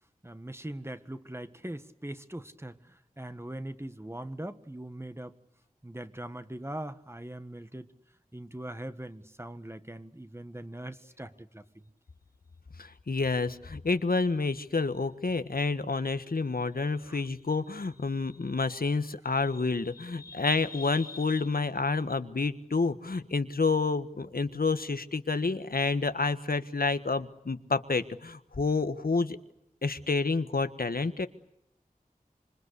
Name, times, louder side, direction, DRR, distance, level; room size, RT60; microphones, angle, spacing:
voice 1, 0.2-5.4 5.8-7.9 8.3-11.6 17.1-17.2, right 1 dB, 15° right, 10 dB, 1.6 m, -41 dB
voice 2, 12.8-29.4 29.8-31.3, left 3 dB, 85° left, 11 dB, 1.4 m, -29 dB
26.5 x 25.0 x 8.3 m, 0.76 s
wide cardioid pair, 55°, 15 cm